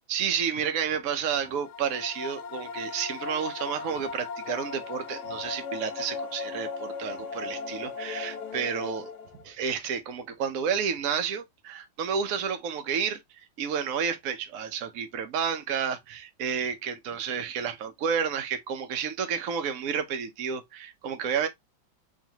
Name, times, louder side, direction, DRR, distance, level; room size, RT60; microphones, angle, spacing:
voice 1, 0.1-9.1 9.4-13.2 13.6-21.5, right 7 dB, 55° right, 1.0 m, -30 dB
sound 1, 1.4-9.5, left 5 dB, 65° left, 1.2 m, -37 dB
4.8 x 3.1 x 2.9 m
omnidirectional pair, 2.2 m